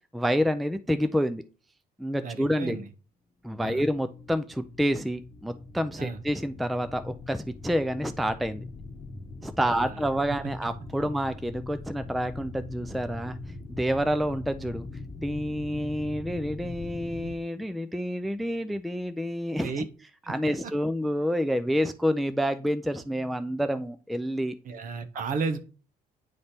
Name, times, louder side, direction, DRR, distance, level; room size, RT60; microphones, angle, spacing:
voice 1, 0.1-1.4 2.0-2.8 3.4-8.6 9.4-13.4 13.7-14.9 15.2-19.9 20.3-24.5, equal, ahead, 11 dB, 0.4 m, -28 dB
voice 2, 2.2-2.9 3.6-3.8 6.0-6.2 9.6-10.0 19.6-19.8 20.2-20.3 24.6-25.6, right 4 dB, 55° right, 9 dB, 1.1 m, -33 dB
sound 1, 3.7-17.4, left 2 dB, 25° left, 1.1 m, -42 dB
9.5 x 3.2 x 4.3 m, 0.36 s
cardioid pair, 110°, 17 cm